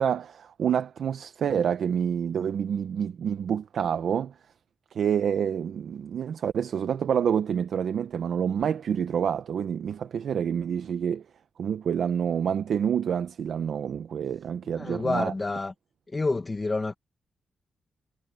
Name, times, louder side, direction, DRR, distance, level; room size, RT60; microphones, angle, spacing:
voice 1, 0.0-4.3 4.9-11.2 11.6-15.3, right 8 dB, 65° right, 0.7 m, -27 dB
voice 2, 14.8-15.7 16.1-16.9, left 3 dB, 20° left, 1.2 m, -28 dB
wide cardioid pair, 155°, 0 cm